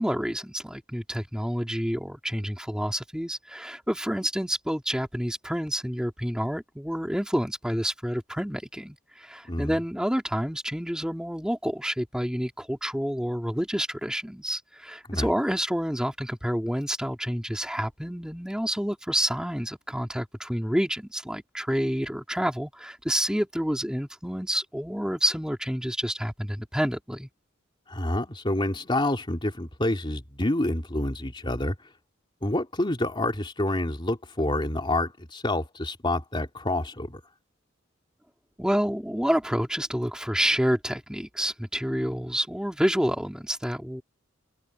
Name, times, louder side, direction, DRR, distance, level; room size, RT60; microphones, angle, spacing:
voice 1, 0.0-27.3 38.6-44.0, equal, 5° right, 2.6 m, -28 dB
voice 2, 27.9-31.7 32.4-37.2, left 1 dB, 25° left, 3.0 m, -28 dB
head